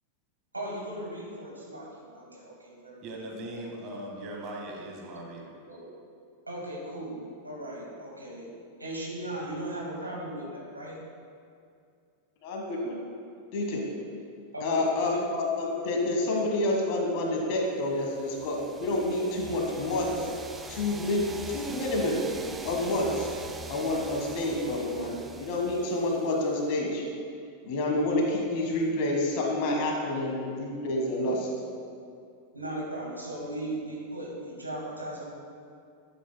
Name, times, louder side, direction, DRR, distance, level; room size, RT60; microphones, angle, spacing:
voice 1, 0.5-3.0 4.5-4.6 5.7-5.9 6.5-8.4 8.8-10.9 14.5-15.2 17.0-17.1 32.5-35.3, right 1 dB, 80° right, -4 dB, 1.9 m, -37 dB
voice 2, 3.0-5.5, right 1 dB, 35° right, -1 dB, 1.6 m, -39 dB
voice 3, 12.4-12.9 13.5-13.8 14.6-20.3 20.7-22.2 22.6-23.3 23.7-27.0 27.6-31.4, left 2 dB, 45° left, 1 dB, 1.4 m, -28 dB
sound 1, 18.0-26.8, right 3 dB, 15° right, 0.4 m, -43 dB
11.5 x 8.1 x 2.2 m, 2.4 s
figure-of-eight pair, 90°, 0 cm